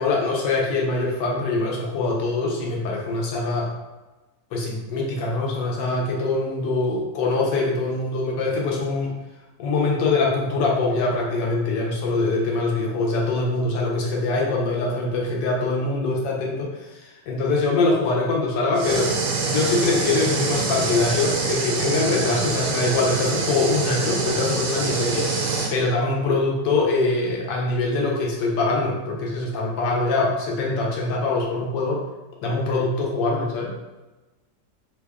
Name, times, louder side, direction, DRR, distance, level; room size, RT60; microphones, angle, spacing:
voice 1, 0.0-3.7 4.5-9.1 9.6-19.1 19.5-25.5 25.7-32.0 32.4-33.7, left 3 dB, 80° left, -2 dB, 1.3 m, -23 dB
sound 1, 18.8-25.7, right 4 dB, 80° right, 1.3 m, -25 dB
3.3 x 2.2 x 3.4 m, 1.1 s
omnidirectional pair, 1.9 m